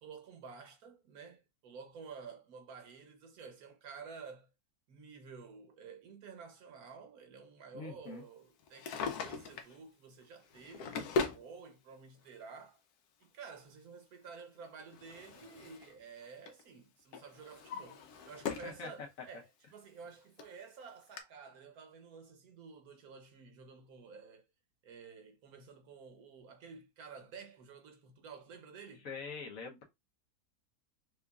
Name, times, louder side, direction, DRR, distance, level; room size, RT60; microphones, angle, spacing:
voice 1, 0.0-4.5 4.9-12.8 13.2-24.5 24.8-29.1, right 5 dB, 75° right, 1.3 m, -51 dB
voice 2, 7.7-8.2 18.6-19.1 29.0-29.8, left 4 dB, 65° left, 1.3 m, -44 dB
Drawer open or close, 8.6-9.8 10.5-11.5 12.5-12.6 14.4-15.9 16.2-16.6 17.1-18.8 19.2-19.3 20.1-20.2 20.4-20.5 21.2-21.3, left 4 dB, 85° left, 1.2 m, -39 dB
4.9 x 2.4 x 2.3 m
omnidirectional pair, 1.6 m